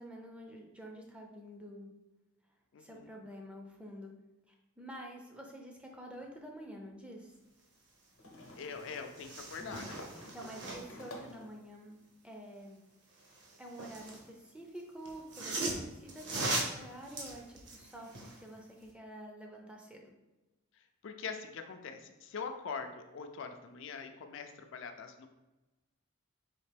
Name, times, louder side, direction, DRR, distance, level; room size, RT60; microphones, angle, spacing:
voice 1, 0.0-1.9 2.8-4.1 4.5-7.3 10.2-12.0 12.2-12.8 13.6-20.1, right 1 dB, 5° right, 0 dB, 0.4 m, -48 dB
voice 2, 2.7-3.1 8.6-10.0 21.0-25.3, left 5 dB, 60° left, 6 dB, 0.4 m, -43 dB
sound 1, 6.2-6.3 8.2-11.5, left 1 dB, 80° left, 0.8 m, -50 dB
sound 2, 8.4-8.5 8.8-11.0 13.2-14.2 15.0-18.4 18.8-18.9, right 2 dB, 55° right, 0.8 m, -39 dB
4.2 x 2.9 x 3.3 m, 1.1 s
head